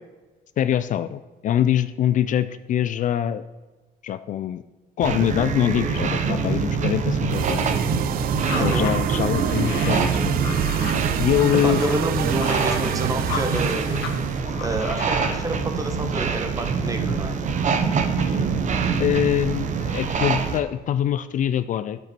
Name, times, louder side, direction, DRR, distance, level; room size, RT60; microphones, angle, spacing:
voice 1, 0.6-3.4 4.0-4.6 5.0-7.7 8.6-10.3 11.2-11.8 18.2-18.5 19.0-22.0, left 11 dB, 50° left, 12 dB, 0.4 m, -24 dB
sound 1, 5.0-20.6, right 5 dB, 45° right, 0.9 m, -25 dB
sound 2, 7.3-14.4, right 12 dB, 60° right, 0.4 m, -29 dB
sound 3, 8.4-14.2 14.5-15.4, left 7 dB, 85° left, 1.2 m, -35 dB
voice 2, 8.4-8.9 11.6-14.0 14.6-17.3, right 1 dB, 20° right, 5 dB, 1.4 m, -28 dB
9.4 x 7.6 x 4.4 m, 1.3 s
cardioid pair, 110°, 17 cm